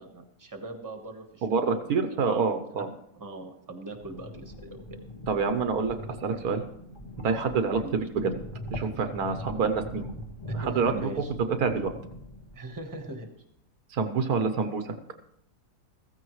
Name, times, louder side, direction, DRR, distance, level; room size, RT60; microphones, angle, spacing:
voice 1, 0.0-2.9 3.1-4.8 7.7-7.9 9.3-9.4 10.5-11.3 12.5-13.3, right 2 dB, 15° right, 5 dB, 1.2 m, -41 dB
voice 2, 1.4-2.9 5.3-6.0 6.2-6.6 7.2-7.8 8.1-8.3 8.7-10.0 10.5-11.1 11.5-11.9 13.9-14.9, right 5 dB, 75° right, 8 dB, 1.4 m, -27 dB
sound 1, 3.8-13.1, left 1 dB, 20° left, 1.3 m, -41 dB
15.0 x 14.5 x 3.2 m, 0.73 s
omnidirectional pair, 1.6 m